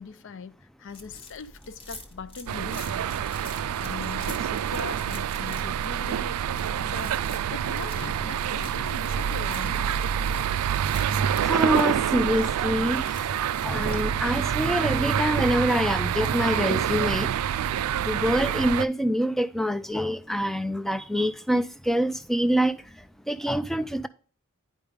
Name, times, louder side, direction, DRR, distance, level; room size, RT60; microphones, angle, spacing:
voice 1, 0.0-3.3 3.8-7.2 7.5-9.8, left 4 dB, 60° left, 0.5 m, -41 dB
sound 1, 0.9-14.0, left 2 dB, 25° left, 1.2 m, -47 dB
sound 2, 2.5-18.9, right 9 dB, 85° right, 0.3 m, -27 dB
sound 3, 7.8-9.5 10.3-11.9 12.9-13.9 14.3-15.8 16.4-18.2, equal, 85° left, 3.3 m, -49 dB
voice 2, 11.4-13.0 13.6-17.3 18.0-22.8 23.3-24.1, equal, ahead, 0.3 m, -25 dB
9.6 x 5.1 x 3.4 m
head